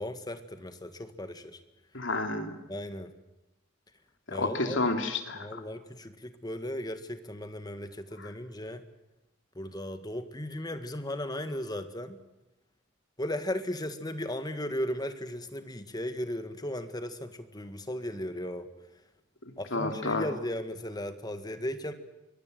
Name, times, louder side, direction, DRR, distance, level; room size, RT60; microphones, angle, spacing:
voice 1, 0.0-1.6 2.7-3.1 4.3-4.8 5.3-8.8 9.6-12.2 13.2-18.7 19.6-21.9, left 1 dB, 20° left, 9 dB, 1.8 m, -36 dB
voice 2, 1.9-2.6 4.3-5.5 8.2-8.3 19.7-20.3, left 2 dB, 60° left, 6 dB, 3.1 m, -30 dB
25.5 x 23.0 x 7.9 m, 0.98 s
head